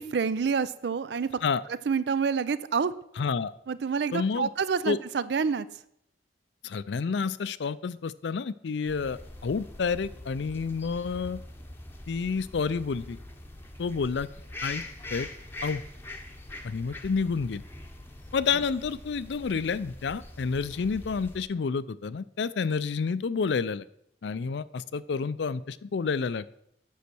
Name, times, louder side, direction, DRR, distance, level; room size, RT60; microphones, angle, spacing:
voice 1, 0.0-1.3 1.9-2.9 3.7-5.7, right 5 dB, 65° right, 16 dB, 0.4 m, -27 dB
voice 2, 3.2-3.5 4.1-4.5 4.9-5.0 6.6-11.4 12.1-13.2 13.8-14.3 14.6-14.8 15.1-15.3 15.6-15.8 16.6-17.6 18.3-23.9 24.2-26.5, left 5 dB, 75° left, 16 dB, 0.4 m, -29 dB
sound 1, 8.9-21.4, left 2 dB, 10° left, 0.8 m, -43 dB
8.3 x 6.4 x 6.1 m, 0.74 s
head